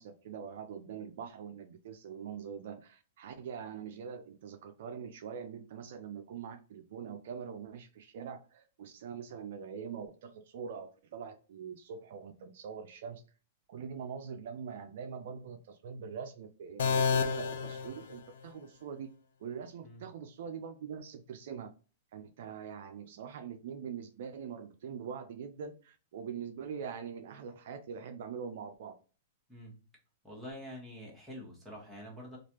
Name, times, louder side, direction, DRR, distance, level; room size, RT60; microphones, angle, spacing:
voice 1, 0.0-13.2 13.7-19.1 19.4-21.7 22.1-28.9, right 7 dB, 65° right, 7 dB, 0.4 m, -43 dB
sound 1, 16.8-18.7, left 5 dB, 75° left, 0.4 m, -31 dB
voice 2, 29.5-29.8 30.2-32.4, equal, 5° right, -4 dB, 1.3 m, -46 dB
3.1 x 2.4 x 2.9 m, 0.37 s
hypercardioid pair, 125°, 0 cm